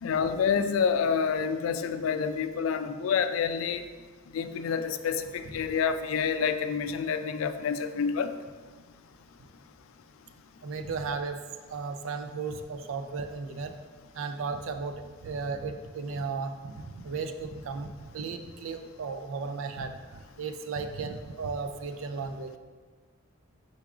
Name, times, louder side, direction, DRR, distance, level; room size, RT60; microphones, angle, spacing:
voice 1, 0.0-3.8 4.3-8.3, left 6 dB, 80° left, 10 dB, 0.3 m, -28 dB
voice 2, 10.6-11.4 11.7-13.7 14.1-20.0 20.4-22.5, right 4 dB, 75° right, 7 dB, 0.4 m, -35 dB
4.7 x 4.6 x 2.4 m, 1.4 s
head